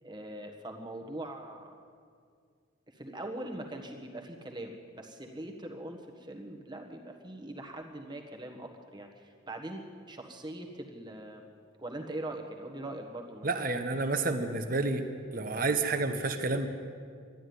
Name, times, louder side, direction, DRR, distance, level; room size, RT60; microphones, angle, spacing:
voice 1, 0.0-1.7 2.9-13.6 15.5-15.7, right 1 dB, 20° right, 3 dB, 1.4 m, -42 dB
voice 2, 13.4-15.0 15.3-16.7, right 3 dB, 45° right, 8 dB, 1.0 m, -29 dB
12.5 x 12.0 x 9.6 m, 2.1 s
head